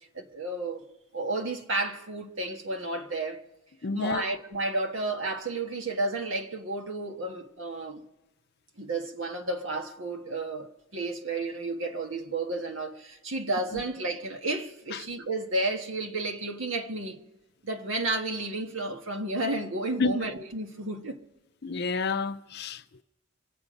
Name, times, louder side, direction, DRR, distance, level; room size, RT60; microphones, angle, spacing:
voice 1, 0.1-0.8 1.1-3.4 3.9-8.0 8.8-17.2 17.6-21.2, right 2 dB, 70° right, 1.6 m, -32 dB
voice 2, 3.8-4.2 13.7-13.8 20.0-20.1 21.6-23.0, left 4 dB, 55° left, 0.6 m, -29 dB
25.5 x 8.4 x 5.2 m
head